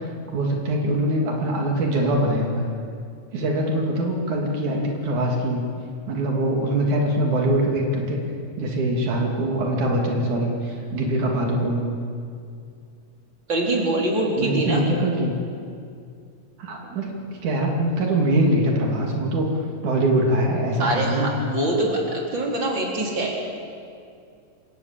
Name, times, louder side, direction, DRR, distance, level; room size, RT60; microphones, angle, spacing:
voice 1, 0.0-2.7 3.3-5.6 6.1-8.2 8.6-11.9 14.4-15.3 16.6-17.1 17.4-19.5 19.8-21.4, right 1 dB, 85° right, 0 dB, 3.9 m, -23 dB
voice 2, 13.5-14.9 20.8-23.4, right 1 dB, 40° right, -1 dB, 4.5 m, -24 dB
28.0 x 15.5 x 8.7 m, 2.4 s
omnidirectional pair, 3.3 m